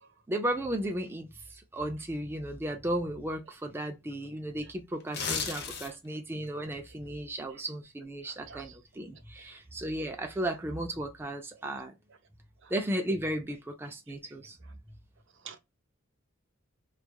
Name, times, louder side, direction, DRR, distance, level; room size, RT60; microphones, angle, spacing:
voice 1, 0.3-11.9 12.7-14.6, right 1 dB, 10° right, 0.4 m, -35 dB
sound 1, 5.0-6.2 6.6-6.7, left 5 dB, 55° left, 0.6 m, -34 dB
voice 2, 8.2-8.8 9.4-9.5 12.6-12.8 15.4-15.6, right 7 dB, 65° right, 0.5 m, -50 dB
2.8 x 2.3 x 2.2 m
head